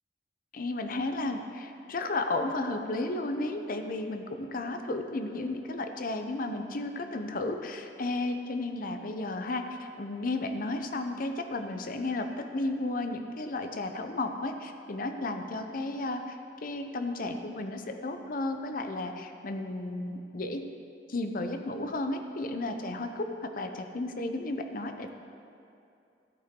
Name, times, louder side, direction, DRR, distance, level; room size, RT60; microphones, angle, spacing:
voice 1, 0.5-16.4 16.6-20.6 21.1-25.1, left 2 dB, 50° left, 6 dB, 0.7 m, -33 dB
13.5 x 8.5 x 3.7 m, 2.6 s
head